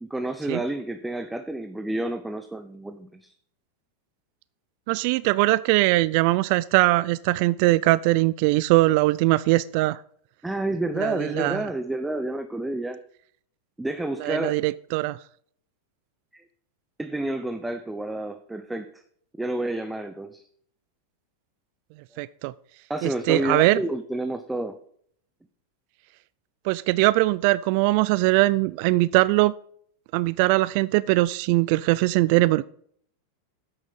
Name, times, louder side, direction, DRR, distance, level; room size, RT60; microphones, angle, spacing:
voice 1, 0.0-3.3 10.4-13.0 13.8-14.5 16.3-16.4 17.0-19.0 19.4-20.4 22.9-24.8, right 1 dB, 5° right, 8 dB, 0.7 m, -29 dB
voice 2, 4.9-10.0 11.0-11.6 14.2-15.2 22.2-22.5 23.0-23.8 26.6-29.5 30.1-32.6, right 19 dB, 55° right, 19 dB, 0.3 m, -21 dB
8.8 x 6.2 x 5.8 m, 0.62 s
hypercardioid pair, 110°, 0 cm